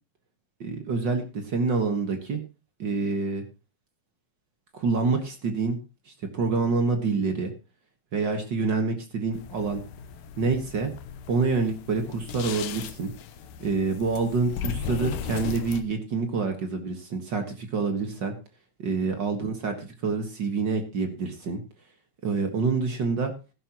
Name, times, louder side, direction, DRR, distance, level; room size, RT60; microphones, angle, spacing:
voice 1, 0.6-2.4 2.8-3.4 4.7-5.8 6.3-7.5 8.1-9.8 10.4-10.9 11.3-13.1 13.6-18.3 18.8-21.6 22.2-23.3, right 4 dB, 50° right, 5 dB, 1.3 m, -27 dB
sound 1, 9.3-15.8, left 8 dB, 70° left, 2.4 m, -37 dB
15.5 x 12.0 x 3.0 m, 0.30 s
omnidirectional pair, 4.2 m